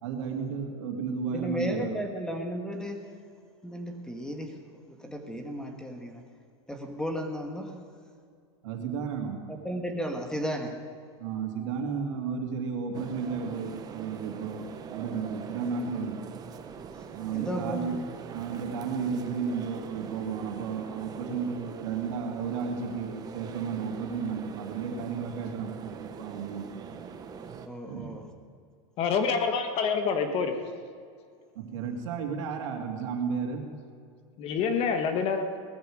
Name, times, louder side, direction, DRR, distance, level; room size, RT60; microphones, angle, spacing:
voice 1, 0.0-2.1 8.6-9.4 11.2-16.3 17.1-18.0 18.3-26.7 27.9-28.1 31.5-33.7, right 6 dB, 75° right, 2.8 m, -33 dB
voice 2, 1.3-3.1 3.6-6.2 6.7-7.8 9.5-10.8 17.3-18.0 27.7-28.2, equal, 5° left, 1.7 m, -34 dB
sound 1, 12.9-27.7, right 6 dB, 25° right, 1.0 m, -43 dB
voice 3, 29.0-30.5 34.4-35.5, left 5 dB, 40° left, 1.5 m, -27 dB
19.0 x 14.0 x 5.0 m
supercardioid pair, 140°, 16 cm